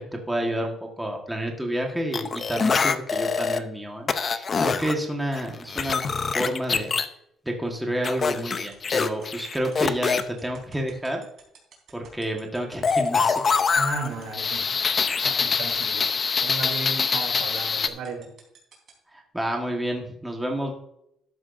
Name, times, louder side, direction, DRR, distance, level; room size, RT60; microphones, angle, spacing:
voice 1, 0.0-6.0 6.3-6.9 7.4-11.2 11.9-13.4 19.1-20.7, right 1 dB, 5° right, 1 dB, 1.4 m, -29 dB
sound 1, 2.1-3.6 4.1-4.9 5.3-7.1 8.0-10.2 12.8-17.9, left 5 dB, 30° left, 0.6 m, -24 dB
sound 2, 8.1-18.9, right 8 dB, 45° right, 3.8 m, -49 dB
voice 2, 13.7-14.6 15.2-16.1 16.4-18.3, right 3 dB, 85° right, 3 dB, 2.9 m, -34 dB
12.5 x 11.0 x 2.6 m, 0.76 s
cardioid pair, 155°, 0 cm